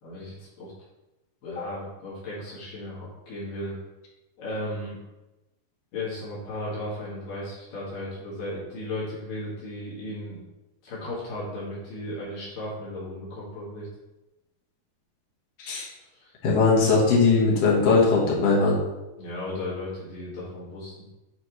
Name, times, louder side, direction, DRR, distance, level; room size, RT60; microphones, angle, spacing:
voice 1, 0.0-0.7 1.4-3.8 4.4-5.0 5.9-10.4 10.8-13.9 16.2-16.3 19.2-20.9, left 1 dB, 70° left, -8 dB, 3.6 m, -35 dB
voice 2, 16.4-18.8, left 4 dB, 55° left, -4 dB, 2.4 m, -20 dB
9.2 x 4.5 x 3.2 m, 1.0 s
omnidirectional pair, 4.0 m